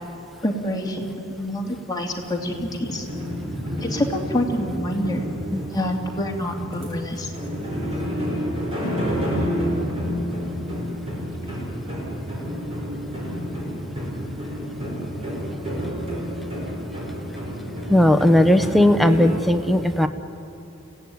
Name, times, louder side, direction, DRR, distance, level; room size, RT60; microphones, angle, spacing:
voice 1, 0.4-3.1 3.8-5.2 5.7-7.3, left 1 dB, 20° left, 0 dB, 2.4 m, -27 dB
sound 1, 2.2-19.4, equal, 30° right, 5.9 m, -29 dB
voice 2, 17.9-20.1, left 1 dB, ahead, 6 dB, 0.9 m, -17 dB
29.5 x 16.5 x 9.6 m, 2.9 s
head